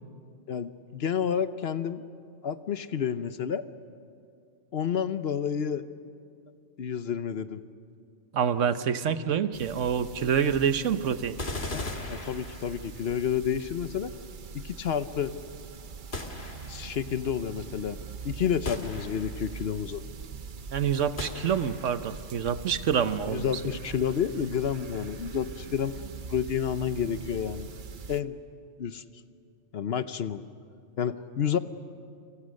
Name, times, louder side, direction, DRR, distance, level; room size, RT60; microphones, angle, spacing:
voice 1, 0.5-2.0 2.4-3.7 4.7-5.8 6.8-7.6 11.7-14.1 14.5-15.3 16.7-18.0 18.2-20.0 23.3-26.0 26.3-27.7 28.1-28.4 28.8-29.0 29.7-30.4 31.0-31.6, left 8 dB, 60° left, 12 dB, 1.0 m, -30 dB
voice 2, 8.3-11.4 20.7-23.4, right 7 dB, 90° right, 11 dB, 1.3 m, -27 dB
sound 1, 9.5-28.2, right 6 dB, 50° right, 0.8 m, -43 dB
sound 2, 11.4-13.0 16.1-17.0 18.7-19.6 21.2-22.0, left 2 dB, 45° left, 2.1 m, -38 dB
29.5 x 25.0 x 6.5 m, 2.3 s
omnidirectional pair, 1.2 m